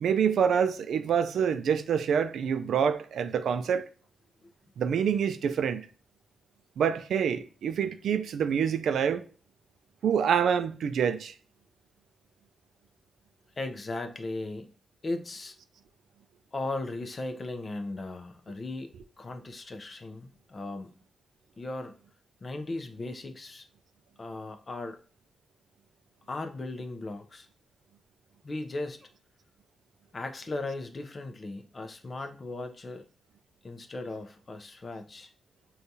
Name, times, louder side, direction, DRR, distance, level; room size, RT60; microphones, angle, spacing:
voice 1, 0.0-3.9 4.8-5.8 6.8-9.2 10.0-11.3, right 7 dB, 85° right, 0.3 m, -26 dB
voice 2, 13.6-14.7 15.0-15.5 16.5-18.9 19.2-20.9 21.6-21.9 22.4-23.7 24.2-25.0 26.3-27.5 28.4-29.1 30.1-33.0 33.6-35.3, left 2 dB, 35° left, 0.5 m, -37 dB
6.5 x 2.3 x 2.6 m
wide cardioid pair, 115°, 0 cm